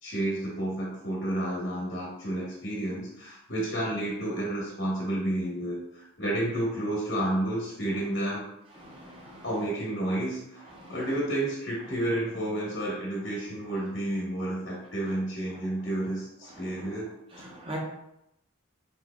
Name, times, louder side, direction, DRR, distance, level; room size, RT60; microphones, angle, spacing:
voice 1, 0.0-8.4 9.4-17.1, right 1 dB, 55° left, -5 dB, 1.2 m, -31 dB
voice 2, 8.8-9.5 10.7-10.9 16.5-16.9 17.3-17.8, right 1 dB, 25° right, -3 dB, 1.0 m, -42 dB
4.6 x 4.4 x 2.3 m, 0.81 s
head